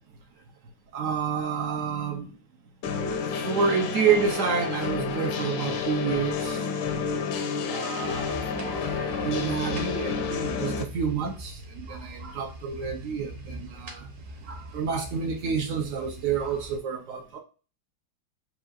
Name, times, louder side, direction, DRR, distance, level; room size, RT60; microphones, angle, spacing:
voice 1, 0.9-2.4 3.4-6.7 7.7-14.1 14.4-17.4, right 6 dB, 80° right, 0.7 m, -29 dB
sound 1, 2.8-10.8, left 5 dB, 85° left, 1.5 m, -30 dB
sound 2, 8.0-16.8, equal, 45° right, 0.8 m, -42 dB
6.3 x 2.3 x 2.5 m
omnidirectional pair, 2.1 m